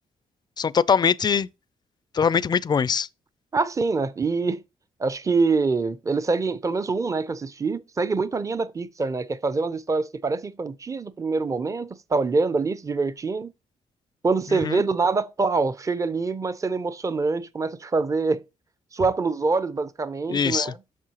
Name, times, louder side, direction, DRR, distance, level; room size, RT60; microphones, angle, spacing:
voice 1, 0.6-1.5 2.1-3.1 14.5-14.8 20.3-20.7, left 6 dB, 30° left, 0.4 m, -22 dB
voice 2, 3.5-4.6 5.0-13.5 14.2-18.4 18.9-20.8, right 4 dB, 25° right, 0.5 m, -25 dB
7.5 x 6.2 x 2.9 m
cardioid pair, 90°, 13 cm